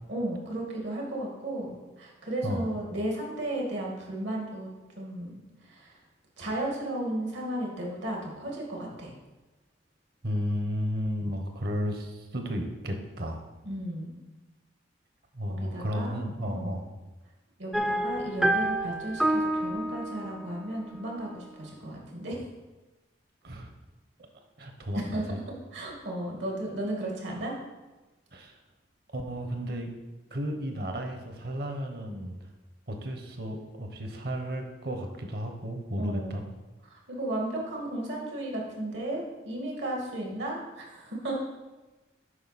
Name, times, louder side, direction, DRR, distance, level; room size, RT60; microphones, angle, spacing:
voice 1, 0.1-4.7 5.0-5.9 6.4-9.1 13.6-14.2 15.5-16.2 16.5-16.8 17.6-22.4 24.9-25.4 25.7-27.5 36.0-36.5 36.9-41.3, right 1 dB, 80° right, -1 dB, 1.9 m, -34 dB
voice 2, 10.2-13.4 15.3-16.9 23.4-23.7 24.6-25.4 28.3-28.6 29.1-29.9 30.3-32.5 32.9-36.4, equal, 55° right, 4 dB, 1.0 m, -33 dB
sound 1, 17.7-21.6, right 1 dB, 5° right, 0.3 m, -29 dB
7.8 x 5.2 x 4.1 m, 1.1 s
head